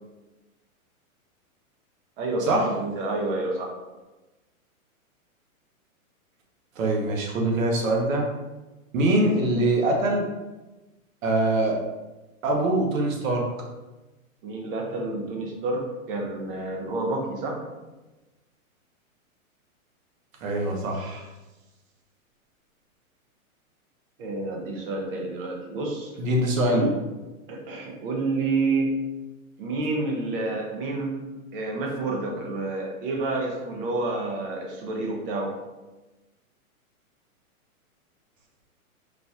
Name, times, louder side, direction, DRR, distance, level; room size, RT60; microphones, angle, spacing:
voice 1, 2.2-3.7 14.4-17.7 24.2-26.1 26.7-26.9 27.5-29.0 29.6-31.2 31.5-35.5, right 2 dB, 40° right, 1 dB, 0.7 m, -29 dB
voice 2, 6.8-8.3 8.9-10.2 11.2-11.8 12.4-13.4 20.4-21.3 26.2-26.9, right 1 dB, 65° right, 0 dB, 1.0 m, -23 dB
3.9 x 2.8 x 2.4 m, 1.1 s
hypercardioid pair, 150°, 43 cm